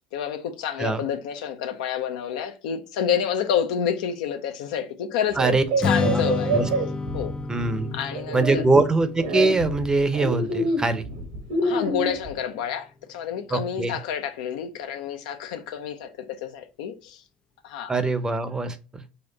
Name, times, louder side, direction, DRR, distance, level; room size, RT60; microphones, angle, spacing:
voice 1, 0.0-6.6 7.1-7.3 7.9-8.6 11.5-17.2 17.6-17.9, left 8 dB, 75° left, 0.6 m, -29 dB
sound 1, 5.3-7.6 8.1-8.6 9.2-12.3, right 1 dB, 80° right, 1.3 m, -26 dB
Strum, 5.8-12.1, left 3 dB, 20° left, 0.4 m, -31 dB
voice 2, 7.5-8.0 8.3-11.0 13.5-14.0 17.9-19.0, right 3 dB, 15° right, 0.6 m, -23 dB
4.3 x 2.4 x 3.9 m
hypercardioid pair, 80°, 4 cm